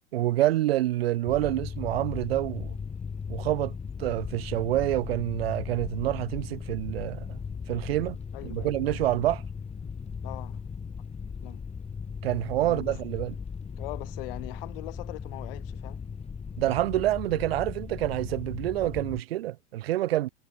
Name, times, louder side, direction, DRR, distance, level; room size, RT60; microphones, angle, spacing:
voice 1, 0.1-2.8 3.3-3.7 4.0-7.4 7.7-8.2 8.4-9.4 12.2-13.3 16.6-20.3, right 14 dB, 75° right, 1.4 m, -27 dB
sound 1, 1.2-19.2, left 6 dB, 20° left, 5.4 m, -37 dB
voice 2, 8.3-8.7 10.2-10.6 11.4-11.6 12.6-13.0 13.8-16.0, left 22 dB, 65° left, 5.8 m, -41 dB
hypercardioid pair, 100°, 30 cm